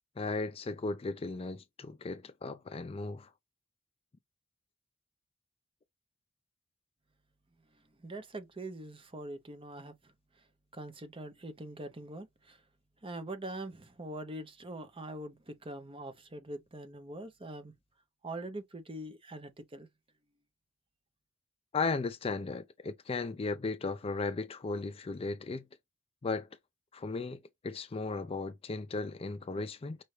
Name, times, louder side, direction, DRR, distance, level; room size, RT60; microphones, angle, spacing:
voice 1, 0.2-3.3 21.7-25.7 26.2-26.5 26.9-30.0, left 3 dB, 30° left, 0.4 m, -36 dB
voice 2, 8.0-10.1 10.7-12.6 13.0-17.7 18.2-19.9, right 1 dB, 25° right, 0.8 m, -43 dB
5.5 x 2.6 x 3.2 m
head